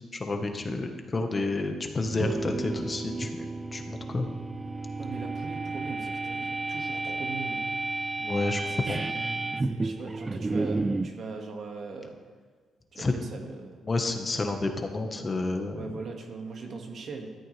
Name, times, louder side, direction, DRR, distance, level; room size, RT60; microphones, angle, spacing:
voice 1, 0.1-3.4 3.7-4.3 8.2-9.0 12.9-13.1 13.8-16.0, left 2 dB, 30° left, 4 dB, 1.4 m, -30 dB
sound 1, 2.0-11.2, right 3 dB, 25° right, 0.5 m, -32 dB
voice 2, 5.0-7.7 8.7-8.9 9.6-12.2 12.9-13.8 15.7-17.3, right 4 dB, 55° right, 2 dB, 2.0 m, -40 dB
14.0 x 13.5 x 3.4 m, 1.5 s
cardioid pair, 90°, 0 cm